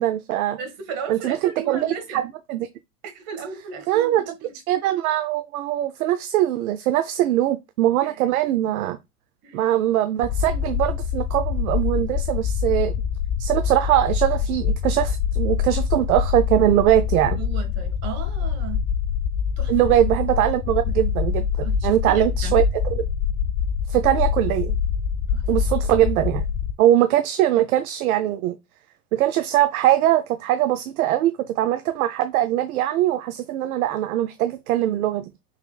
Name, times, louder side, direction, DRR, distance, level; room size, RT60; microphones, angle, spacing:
voice 1, 0.0-0.6 1.1-1.4 1.7-2.7 3.9-4.3 4.7-9.0 9.5-13.0 13.4-17.4 19.7-23.0 23.9-24.8 25.5-26.4 26.8-28.6 29.1-35.3, right 13 dB, 65° right, 0.7 m, -21 dB
voice 2, 0.6-2.3 3.0-4.6 8.0-8.3 9.4-9.6 17.2-18.8 19.6-19.7 21.6-22.6 25.3-25.6, right 7 dB, 50° right, 1.8 m, -36 dB
sound 1, 10.2-26.7, left 7 dB, 35° left, 0.6 m, -25 dB
5.8 x 3.7 x 2.3 m
hypercardioid pair, 95°, 46 cm